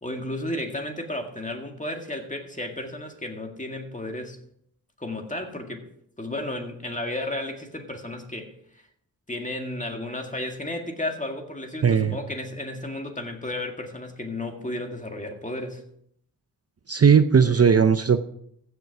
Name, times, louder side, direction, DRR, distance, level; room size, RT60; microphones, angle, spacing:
voice 1, 0.0-4.4 5.0-5.9 6.2-8.5 9.3-15.8, left 1 dB, 20° left, 3 dB, 1.9 m, -33 dB
voice 2, 11.8-12.2 16.9-18.2, right 6 dB, 45° right, 10 dB, 0.6 m, -17 dB
15.0 x 6.8 x 4.7 m, 0.70 s
wide cardioid pair, 85°, 35 cm